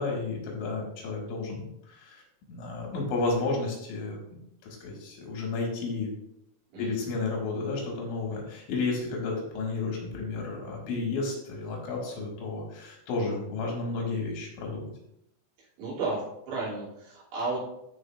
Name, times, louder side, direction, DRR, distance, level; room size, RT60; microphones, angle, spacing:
voice 1, 0.0-2.2 2.5-6.1 6.8-14.9, left 3 dB, 90° left, -1 dB, 4.2 m, -32 dB
voice 2, 6.7-7.0 15.6-17.6, right 3 dB, 70° right, -7 dB, 5.0 m, -33 dB
13.0 x 5.2 x 2.5 m, 0.79 s
omnidirectional pair, 5.2 m